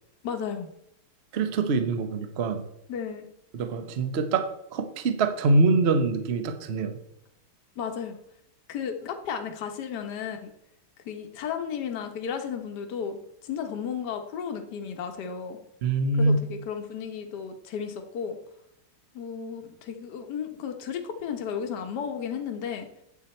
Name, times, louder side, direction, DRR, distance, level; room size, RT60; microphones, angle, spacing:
voice 1, 0.2-0.7 2.9-3.2 7.8-8.2 8.7-10.5 11.0-15.6 16.2-18.4 19.1-22.9, left 7 dB, 60° left, 5 dB, 1.5 m, -34 dB
voice 2, 1.3-2.6 3.5-7.0 15.8-16.4, right 3 dB, 50° right, 8 dB, 0.8 m, -24 dB
9.8 x 7.8 x 4.3 m, 0.78 s
omnidirectional pair, 2.2 m